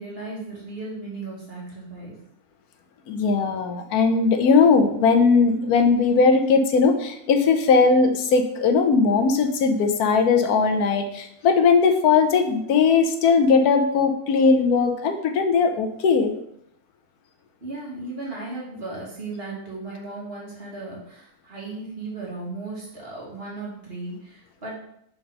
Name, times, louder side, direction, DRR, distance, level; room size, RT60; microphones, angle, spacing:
voice 1, 0.0-2.1 17.6-24.8, right 3 dB, 40° right, -5 dB, 2.1 m, -36 dB
voice 2, 3.1-16.3, left 5 dB, 80° left, 6 dB, 1.2 m, -19 dB
4.6 x 3.8 x 5.4 m, 0.73 s
omnidirectional pair, 1.6 m